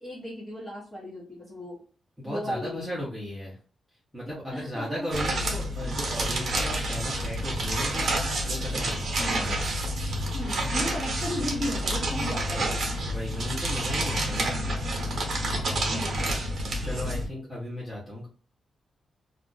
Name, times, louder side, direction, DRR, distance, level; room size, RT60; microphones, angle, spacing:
voice 1, 0.0-1.8 2.2-2.8 4.5-5.1 9.2-9.6 10.3-12.8 15.9-16.4, left 1 dB, 20° left, -7 dB, 1.0 m, -35 dB
voice 2, 2.2-3.6 4.1-9.1 12.4-14.6 15.8-16.1 16.8-18.3, left 1 dB, 5° right, -7 dB, 0.8 m, -36 dB
sound 1, 5.1-17.3, right 1 dB, 50° right, 0.9 m, -29 dB
2.4 x 2.4 x 3.8 m, 0.39 s
wide cardioid pair, 175°, 0 cm